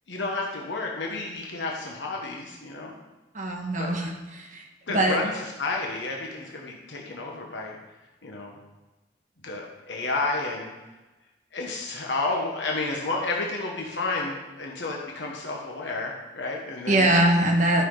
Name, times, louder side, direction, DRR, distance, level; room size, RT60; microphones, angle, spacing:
voice 1, 0.1-3.0 3.8-3.9 4.9-7.8 8.2-8.6 9.4-10.7 11.5-17.1, left 3 dB, 85° left, -1 dB, 1.3 m, -31 dB
voice 2, 3.3-5.2 16.9-17.8, right 1 dB, 45° right, 0 dB, 1.5 m, -23 dB
13.0 x 6.0 x 3.9 m, 1.1 s
head